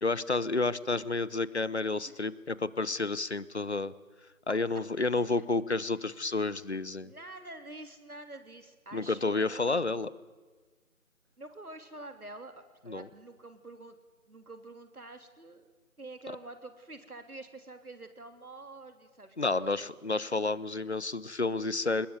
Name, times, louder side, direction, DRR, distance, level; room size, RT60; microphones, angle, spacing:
voice 1, 0.0-3.9 4.5-7.1 8.9-10.1 12.9-13.1 19.4-22.1, left 3 dB, 50° left, 19 dB, 0.9 m, -30 dB
voice 2, 5.1-5.4 7.0-9.7 11.4-12.5 12.8-14.0 14.3-15.7 16.0-20.3, right 2 dB, 80° right, 8 dB, 3.2 m, -47 dB
22.0 x 20.5 x 9.5 m, 1.4 s
figure-of-eight pair, 170°, 43 cm